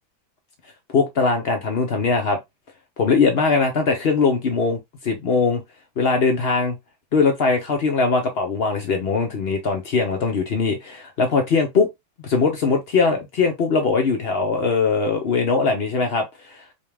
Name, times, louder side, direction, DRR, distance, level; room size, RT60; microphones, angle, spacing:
voice 1, 0.9-2.4 3.0-4.8 5.0-5.6 6.0-6.8 7.1-11.9 12.2-16.7, left 4 dB, 90° left, 0.5 m, -21 dB
5.4 x 2.3 x 3.3 m
omnidirectional pair, 2.1 m